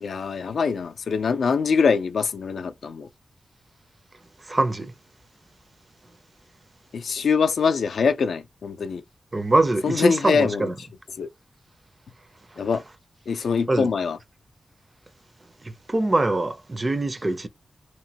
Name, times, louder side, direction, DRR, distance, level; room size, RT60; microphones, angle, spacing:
voice 1, 0.0-3.1 6.9-9.0 9.8-10.7 11.1-11.3 12.6-12.8 13.3-14.2, left 5 dB, 90° left, 0.4 m, -23 dB
voice 2, 4.5-4.9 9.3-10.7 13.7-13.9 15.9-17.5, right 2 dB, 25° right, 0.4 m, -23 dB
2.9 x 2.1 x 2.8 m
wide cardioid pair, 135°, 0 cm